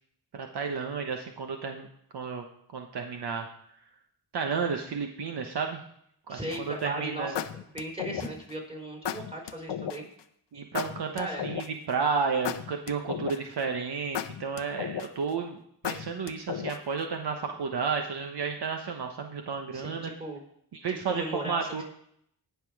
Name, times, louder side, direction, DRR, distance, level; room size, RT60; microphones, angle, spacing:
voice 1, 0.3-1.9 2.1-2.4 2.7-3.5 4.3-5.8 6.3-7.3 10.5-20.1 20.7-21.8, right 5 dB, 65° right, 4 dB, 1.2 m, -32 dB
voice 2, 6.3-7.4 7.7-10.0 11.2-11.5 19.7-20.4 20.9-21.8, right 1 dB, 15° right, 1 dB, 3.9 m, -37 dB
sound 1, 6.5-6.8 7.4-8.5 9.0-10.0 10.7-11.9 12.4-13.6 14.1-15.3 15.8-17.0, left 10 dB, 85° left, 0.7 m, -34 dB
18.0 x 5.9 x 4.7 m, 0.69 s
cardioid pair, 95°, 42 cm